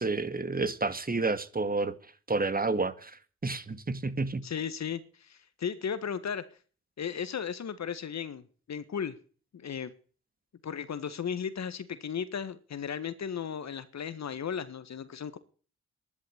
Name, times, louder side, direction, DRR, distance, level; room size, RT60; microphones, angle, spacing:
voice 1, 0.0-1.9 2.3-4.4, right 3 dB, 25° right, 2.1 m, -30 dB
voice 2, 4.4-6.5 7.0-9.2 9.5-9.9 10.6-15.4, left 7 dB, 50° left, 1.7 m, -35 dB
11.5 x 11.0 x 10.0 m
hypercardioid pair, 40°, 35 cm